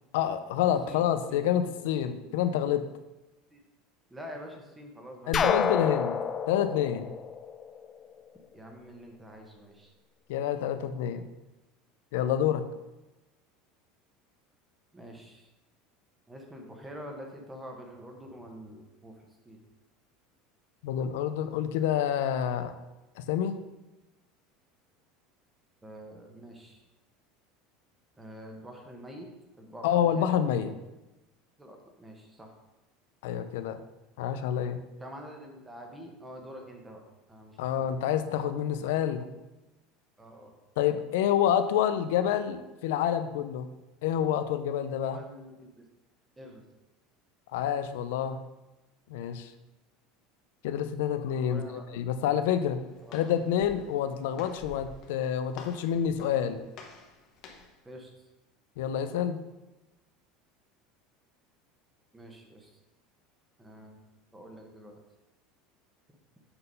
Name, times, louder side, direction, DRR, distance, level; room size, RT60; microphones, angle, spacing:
voice 1, 0.1-2.8 5.3-6.2 6.5-7.1 10.3-11.2 12.1-12.7 20.8-22.7 23.2-23.6 29.8-30.7 33.2-33.8 34.2-34.8 37.6-39.3 40.8-43.7 44.0-45.2 47.5-48.4 49.1-49.5 50.6-52.8 53.1-56.6 58.8-59.4, left 9 dB, 80° left, 10 dB, 0.6 m, -28 dB
voice 2, 0.9-1.7 2.0-2.2 3.5-3.6 4.1-5.9 8.5-9.9 14.9-15.5 16.3-19.6 25.8-26.8 28.2-29.3 29.6-30.5 31.6-32.5 35.0-37.0 37.3-38.2 40.2-40.5 45.0-45.8 46.4-46.7 51.5-51.8 53.0-53.3 57.8-58.1 62.1-62.7 63.6-64.0 64.3-65.0, equal, 10° right, 2 dB, 1.1 m, -46 dB
sound 1, 5.3-8.1, left 6 dB, 20° left, 0.4 m, -29 dB
Walk footsteps, 52.7-57.8, left 4 dB, 40° left, 1.1 m, -51 dB
7.9 x 4.0 x 5.4 m, 1.0 s
cardioid pair, 165°, 0 cm